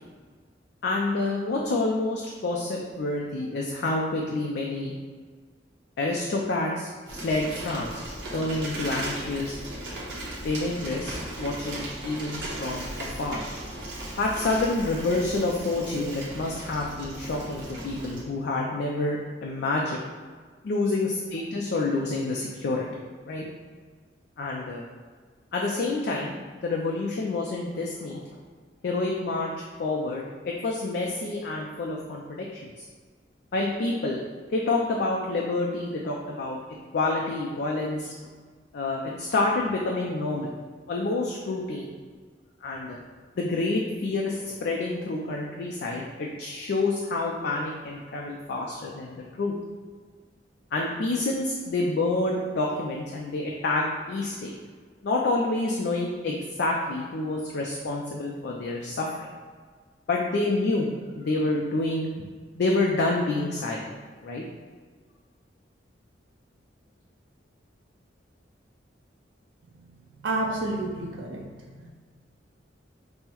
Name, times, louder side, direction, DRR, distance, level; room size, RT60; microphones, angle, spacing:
voice 1, 0.8-4.9 6.0-8.0 8.3-9.6 10.4-13.4 14.2-20.0 20.6-22.9 23.3-23.4 24.4-24.8 25.5-26.3 26.6-28.4 28.8-32.9 33.5-34.2 34.5-36.6 36.9-38.1 38.7-40.5 40.9-41.9 42.6-43.0 43.4-49.5 50.7-54.6 55.0-59.3 60.1-60.9 61.1-62.3 62.6-63.9 64.2-64.4, left 2 dB, 65° left, -1 dB, 0.4 m, -28 dB
Bicycle, 7.1-18.2, right 1 dB, 70° right, 0.9 m, -37 dB
voice 2, 70.1-71.9, right 2 dB, 90° right, -2 dB, 0.5 m, -30 dB
5.4 x 2.1 x 2.9 m, 1.5 s
head